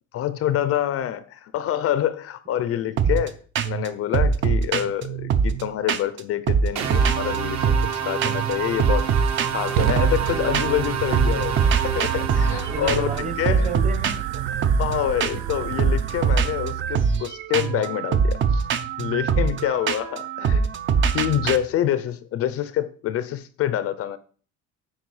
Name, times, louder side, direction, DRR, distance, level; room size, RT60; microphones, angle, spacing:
voice 1, 0.1-3.4 3.6-9.1 9.5-13.1 13.4-13.7 14.5-18.7 19.0-20.7 21.1-24.2, left 11 dB, 45° left, 0.5 m, -26 dB
sound 1, 3.0-3.3 3.5-3.9 4.1-6.2 6.5-7.9 8.2-8.5 8.8-10.9 11.1-21.6, right 6 dB, 35° right, 0.6 m, -23 dB
sound 2, 6.8-13.2, right 7 dB, 55° right, 1.4 m, -28 dB
Fire, 8.2-17.2, right 10 dB, 80° right, 0.7 m, -32 dB
voice 2, 12.3-14.4 20.9-21.0, right 3 dB, 20° right, 1.0 m, -32 dB
9.1 x 5.1 x 4.8 m
cardioid pair, 180°, 32 cm